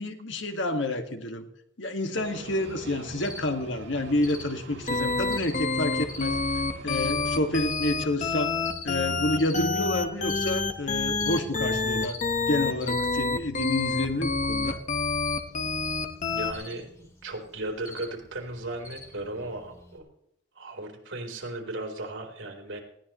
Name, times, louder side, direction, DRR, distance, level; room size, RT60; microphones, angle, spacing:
voice 1, 0.0-1.5 1.8-6.4 6.8-8.6 8.8-12.2 12.5-14.8, left 1 dB, 70° left, 5 dB, 2.0 m, -29 dB
sound 1, 2.1-7.7, right 2 dB, 70° right, 3.9 m, -45 dB
Cricket, 3.2-20.0, left 3 dB, 15° left, 2.8 m, -46 dB
sound 2, 4.9-16.5, left 3 dB, 40° left, 1.3 m, -27 dB
voice 2, 16.3-16.9 17.2-20.1 20.6-22.8, right 2 dB, 90° right, 2 dB, 4.0 m, -36 dB
19.5 x 17.5 x 3.2 m, 0.77 s
head